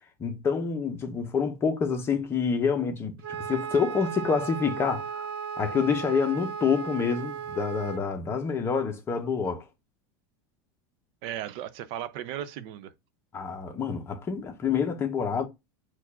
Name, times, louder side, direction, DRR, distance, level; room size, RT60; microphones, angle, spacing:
voice 1, 0.2-5.3 5.6-9.6 13.3-15.5, left 6 dB, 20° left, 0.8 m, -27 dB
Wind instrument woodwind instrument, 3.2-8.0, right 7 dB, 80° right, 0.9 m, -35 dB
voice 2, 11.2-12.9, right 11 dB, 50° right, 0.4 m, -36 dB
4.6 x 2.3 x 4.1 m
supercardioid pair, 150°, 12 cm